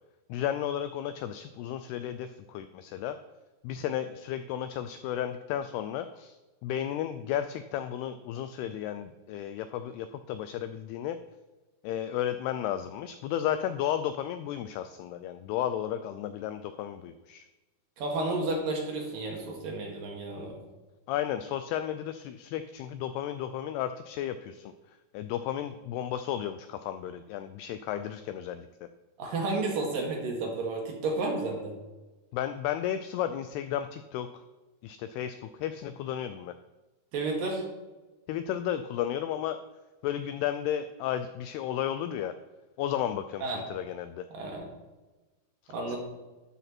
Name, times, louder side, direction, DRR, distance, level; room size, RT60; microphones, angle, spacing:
voice 1, 0.3-3.2 3.6-11.2 11.8-17.5 21.1-28.7 32.3-34.3 34.8-36.5 38.3-39.6 40.0-42.3 42.8-44.3 45.6-46.0, left 10 dB, 85° left, 11 dB, 2.3 m, -33 dB
voice 2, 18.0-20.6 29.2-31.8 37.1-37.6 43.4-43.6 44.3-44.7 45.7-46.0, right 2 dB, 60° right, 0 dB, 3.2 m, -32 dB
12.5 x 9.1 x 4.4 m, 1.2 s
omnidirectional pair, 5.1 m